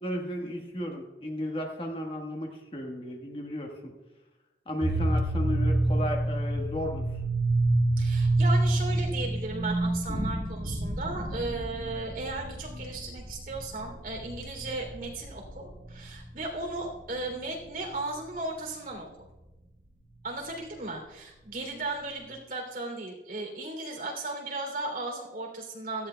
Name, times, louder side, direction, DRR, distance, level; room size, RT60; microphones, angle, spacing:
voice 1, 0.0-3.9 4.7-7.0, left 1 dB, 30° left, 1 dB, 1.3 m, -34 dB
sound 1, 4.8-16.1, right 2 dB, 35° right, 4.0 m, -27 dB
voice 2, 8.0-19.3 20.2-26.1, right 2 dB, 50° right, 1 dB, 3.0 m, -36 dB
17.0 x 14.0 x 2.2 m, 1.1 s
head